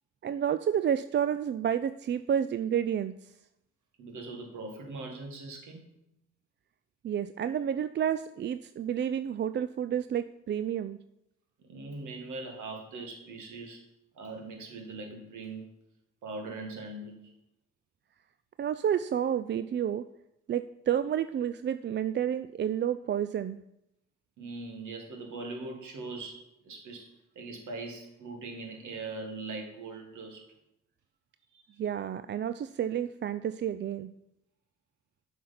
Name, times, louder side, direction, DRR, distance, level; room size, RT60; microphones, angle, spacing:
voice 1, 0.2-3.2 7.0-11.0 18.6-20.1 20.5-23.6 31.8-34.1, right 9 dB, 35° right, 12 dB, 0.4 m, -30 dB
voice 2, 4.0-5.9 11.7-13.8 14.1-15.7 16.2-17.2 24.4-27.1 27.4-30.4 31.5-31.6, right 3 dB, 65° right, 3 dB, 2.0 m, -41 dB
7.7 x 5.1 x 5.8 m, 0.82 s
supercardioid pair, 50°, 32 cm